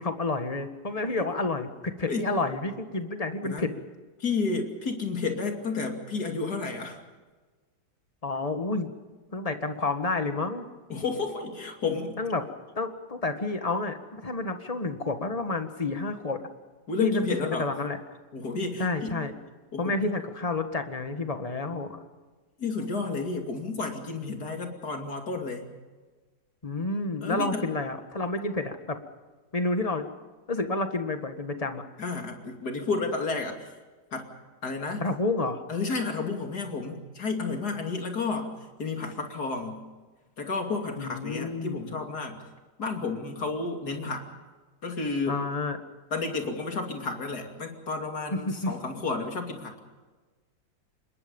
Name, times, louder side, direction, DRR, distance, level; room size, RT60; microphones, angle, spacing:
voice 1, 0.0-3.7 8.2-8.9 9.3-10.6 12.2-12.4 12.7-16.4 17.0-17.2 17.6-18.0 18.8-19.3 19.8-22.0 26.6-29.0 29.5-30.1 30.5-31.8 35.0-35.6 41.0-42.0 45.3-45.8 48.3-48.9, left 2 dB, 20° left, 7 dB, 1.6 m, -30 dB
voice 2, 4.2-7.0 10.9-12.2 16.9-17.7 18.3-19.2 19.7-19.9 22.6-25.7 27.2-27.6 32.0-33.7 34.1-34.3 34.6-35.0 35.7-38.5 38.8-39.8 40.4-42.4 42.8-44.2 44.8-45.4 46.1-49.8, left 4 dB, 55° left, 4 dB, 3.2 m, -31 dB
26.5 x 21.5 x 5.5 m, 1.3 s
omnidirectional pair, 2.0 m